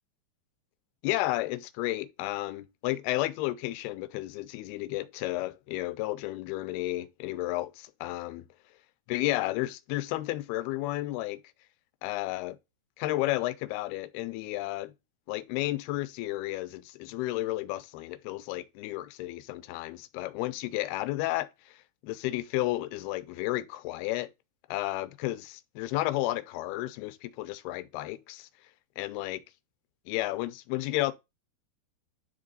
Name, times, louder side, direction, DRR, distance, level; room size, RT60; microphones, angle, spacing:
voice 1, 1.0-8.5 9.1-11.4 12.0-12.6 13.0-14.9 15.3-21.8 22.0-24.3 24.7-28.5 29.0-29.4 30.1-31.1, left 17 dB, 80° left, 2.5 m, -32 dB
10.5 x 3.8 x 4.0 m
omnidirectional pair, 4.7 m